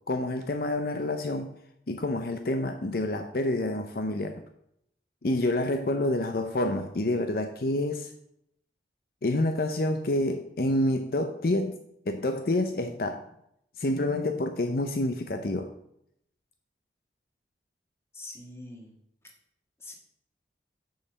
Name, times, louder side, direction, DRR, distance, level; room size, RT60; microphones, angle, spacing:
voice 1, 0.1-1.5 1.9-4.4 5.2-8.1 9.2-11.8 12.1-13.2 13.8-15.7, left 1 dB, 55° left, 6 dB, 0.6 m, -28 dB
voice 2, 18.1-18.9 19.8-19.9, left 2 dB, 15° left, 0 dB, 1.6 m, -43 dB
6.9 x 5.5 x 7.0 m, 0.75 s
head